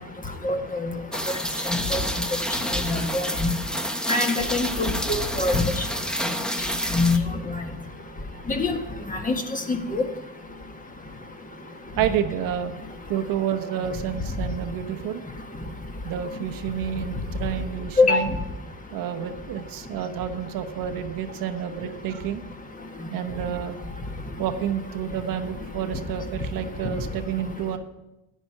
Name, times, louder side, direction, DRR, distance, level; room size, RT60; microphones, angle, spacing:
voice 1, 0.4-0.9 1.7-2.0 2.9-3.5 4.1-5.8 6.9-7.2 8.5-8.8 9.1-10.0 18.0-18.2, left 3 dB, 20° left, 4 dB, 1.5 m, -24 dB
Rain, 1.1-7.2, equal, ahead, 0.8 m, -29 dB
voice 2, 12.0-12.7 13.1-15.2 16.0-18.3 18.9-22.4 23.1-23.8 24.4-27.8, right 9 dB, 70° right, 8 dB, 1.0 m, -29 dB
10.0 x 9.9 x 4.8 m, 0.93 s
cardioid pair, 105°, 35 cm